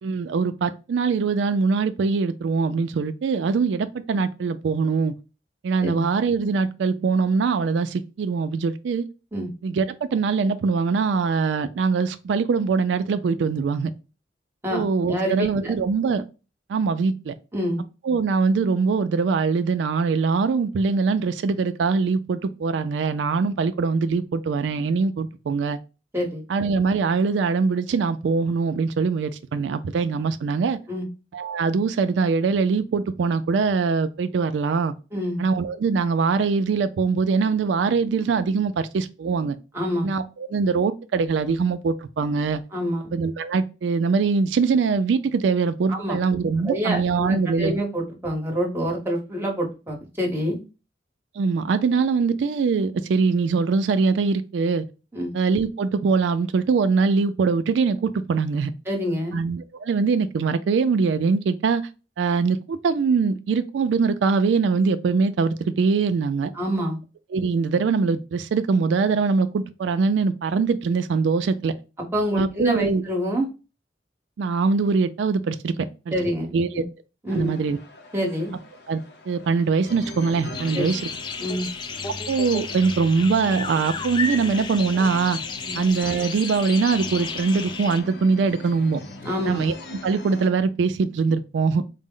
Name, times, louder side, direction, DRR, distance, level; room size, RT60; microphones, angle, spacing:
voice 1, 0.0-5.1 5.6-9.1 9.6-13.9 14.7-16.2 16.7-17.3 18.0-25.8 26.5-30.8 31.3-34.9 35.4-39.6 40.0-42.6 43.1-47.7 51.4-54.8 55.3-58.7 59.3-61.8 62.2-66.5 67.3-71.7 72.4-73.0 74.4-76.1 76.5-76.8 77.3-77.8 78.9-81.0 82.1-85.4 85.8-89.0 89.5-89.7 90.0-91.8, right 4 dB, 85° right, 0.3 m, -22 dB
voice 2, 14.6-15.7 17.5-17.8 26.1-26.4 30.9-31.1 35.1-35.4 39.7-40.1 42.7-43.1 45.9-46.2 46.6-50.6 55.1-55.3 58.9-59.4 66.5-67.0 72.1-73.5 76.1-76.8 77.2-77.5 78.1-78.5 80.7-80.9 81.4-81.7 85.6-85.8 89.2-89.6, equal, 15° right, 0.9 m, -27 dB
sound 1, 77.3-90.5, left 2 dB, 65° left, 0.7 m, -41 dB
sound 2, 80.5-88.0, left 5 dB, 25° left, 0.3 m, -33 dB
4.0 x 2.0 x 3.6 m
head